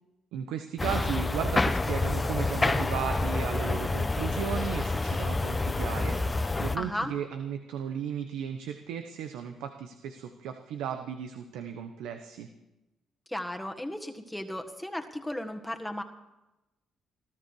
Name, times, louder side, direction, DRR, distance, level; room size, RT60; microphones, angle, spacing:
voice 1, 0.3-12.5, right 8 dB, 90° right, 7 dB, 1.1 m, -35 dB
sound 1, 0.8-6.8, left 2 dB, 20° left, 0.9 m, -28 dB
voice 2, 6.7-7.1 13.3-16.0, left 1 dB, 5° left, 4 dB, 1.7 m, -35 dB
20.5 x 13.5 x 4.8 m, 0.96 s
cardioid pair, 80°, 0 cm